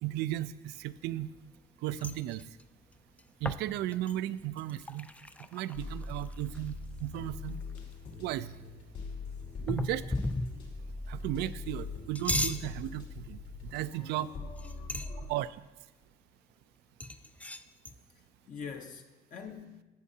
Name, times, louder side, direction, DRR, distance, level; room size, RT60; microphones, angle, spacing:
voice 1, 0.0-1.3 1.8-2.4 3.4-5.1 5.5-7.6 8.2-8.5 9.7-10.0 11.1-13.4 13.7-14.3 15.3-15.6, right 14 dB, 80° right, 0.4 m, -35 dB
sound 1, 0.8-1.7 1.9-6.8 7.2-7.3 7.5-8.2 9.7-10.8 11.9-12.7 13.7-14.0 14.4-15.3 17.0-18.0, left 2 dB, 10° left, 0.3 m, -37 dB
sound 2, 5.7-15.2, left 3 dB, 75° left, 2.6 m, -43 dB
voice 2, 13.9-15.4 18.1-19.8, left 6 dB, 50° left, 0.8 m, -47 dB
16.5 x 6.4 x 2.8 m
cardioid pair, 110°, 17 cm